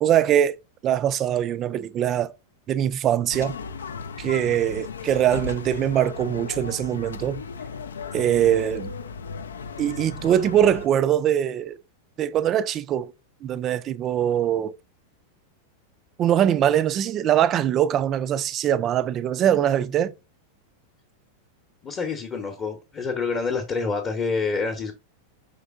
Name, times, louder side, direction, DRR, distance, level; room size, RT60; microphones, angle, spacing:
voice 1, 0.0-0.6 0.8-2.3 2.7-3.5 4.2-7.4 8.1-8.9 9.8-11.8 12.2-13.1 13.4-14.8 16.2-20.1, right 10 dB, 30° right, 0.3 m, -22 dB
sound 1, 3.3-10.9, left 5 dB, 70° left, 0.3 m, -36 dB
voice 2, 21.8-24.9, left 4 dB, 25° left, 0.8 m, -27 dB
5.2 x 3.3 x 2.4 m
figure-of-eight pair, 90°, 0 cm